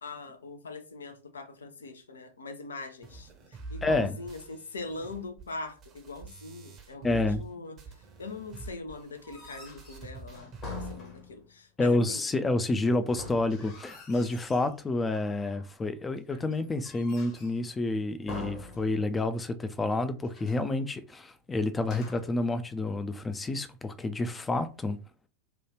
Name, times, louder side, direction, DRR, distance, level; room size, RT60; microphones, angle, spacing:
voice 1, 0.0-7.9 8.2-12.2, left 3 dB, 70° left, 0.5 m, -42 dB
sound 1, 3.0-7.5 7.8-11.0, right 4 dB, 30° right, 0.7 m, -45 dB
voice 2, 3.8-4.1 7.0-7.4 11.8-25.0, left 2 dB, 15° left, 0.4 m, -29 dB
sound 2, 9.1-11.6 13.0-14.7 15.1-15.7 16.3-17.7 18.3-19.4 19.6-19.7 20.2-20.7 21.8-22.4, left 3 dB, 30° left, 1.0 m, -45 dB
3.0 x 2.3 x 3.2 m
figure-of-eight pair, 90°, 0 cm